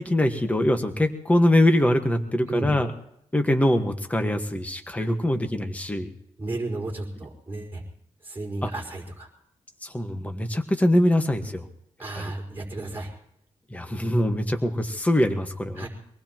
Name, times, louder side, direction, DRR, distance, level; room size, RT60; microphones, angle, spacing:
voice 1, 0.0-2.9 3.3-6.1 8.6-8.7 9.8-11.7 12.2-12.3 13.7-15.9, left 1 dB, 10° left, 5 dB, 1.5 m, -23 dB
voice 2, 6.4-7.8 8.2-9.3 12.0-13.1 15.7-15.9, right 2 dB, 15° right, -3 dB, 5.0 m, -33 dB
25.0 x 19.0 x 3.0 m, 0.74 s
cardioid pair, 95°, 12 cm